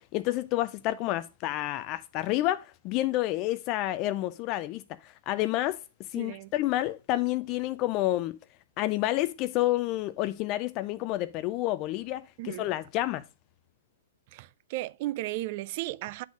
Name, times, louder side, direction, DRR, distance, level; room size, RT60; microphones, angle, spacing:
voice 1, 0.0-5.8 6.1-8.4 8.8-13.2, left 16 dB, 35° left, 0.3 m, -29 dB
voice 2, 6.1-6.5 12.4-12.7 14.3-16.2, right 17 dB, 45° right, 0.3 m, -35 dB
8.2 x 4.1 x 4.7 m
hypercardioid pair, 130°, 0 cm